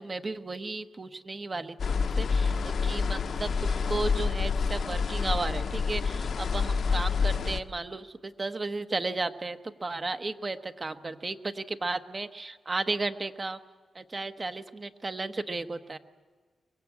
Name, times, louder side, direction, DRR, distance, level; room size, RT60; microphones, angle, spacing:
voice 1, 0.0-13.6 13.9-16.0, right 3 dB, 35° right, 9 dB, 1.2 m, -34 dB
sound 1, 1.8-7.6, left 5 dB, 65° left, 0.9 m, -28 dB
23.0 x 21.0 x 8.5 m, 1.5 s
cardioid pair, 75°, 0 cm